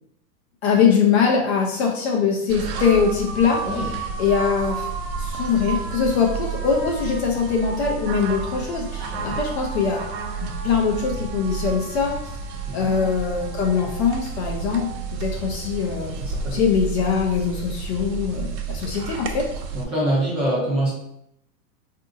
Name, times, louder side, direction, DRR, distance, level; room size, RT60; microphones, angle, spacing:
voice 1, 0.6-3.6 4.2-4.9 5.2-10.0 10.4-12.2 12.7-16.2 16.5-19.5, left 6 dB, 45° left, 0 dB, 0.4 m, -22 dB
sound 1, 2.5-19.8, right 5 dB, 80° right, 0.7 m, -31 dB
voice 2, 12.7-13.0 16.2-16.6 19.7-20.9, right 1 dB, 10° right, -7 dB, 0.5 m, -25 dB
3.7 x 2.5 x 2.5 m, 0.77 s
supercardioid pair, 150°, 49 cm